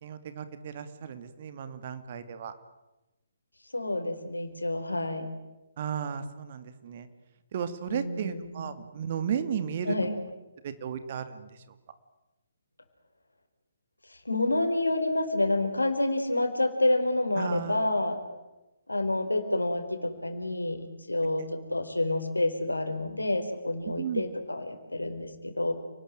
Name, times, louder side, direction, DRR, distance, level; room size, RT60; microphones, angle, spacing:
voice 1, 0.0-2.5 5.8-7.1 7.5-10.0 10.6-11.6 17.4-17.9 23.9-24.2, right 8 dB, 40° right, 10 dB, 2.5 m, -34 dB
voice 2, 3.7-5.3 7.9-8.7 9.9-10.2 14.2-18.2 18.9-20.8 21.1-25.7, left 2 dB, 80° left, 7 dB, 4.4 m, -28 dB
29.5 x 19.5 x 9.3 m, 1.0 s
figure-of-eight pair, 135°, 0 cm